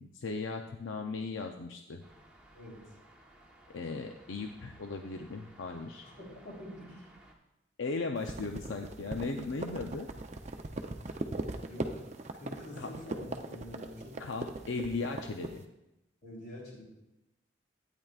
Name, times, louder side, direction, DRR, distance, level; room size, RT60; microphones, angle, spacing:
voice 1, 0.0-2.0 3.7-6.1 7.8-10.1 12.8-12.9 14.2-15.6, left 3 dB, 85° left, 4 dB, 0.6 m, -37 dB
sound 1, 2.0-7.3, right 1 dB, 5° right, 1.0 m, -58 dB
voice 2, 6.0-7.1 11.7-12.0 12.3-14.2 16.2-16.8, left 1 dB, 50° left, -4 dB, 3.7 m, -46 dB
sound 2, 8.2-15.6, right 2 dB, 35° right, 0.5 m, -39 dB
12.0 x 9.1 x 2.4 m, 0.92 s
head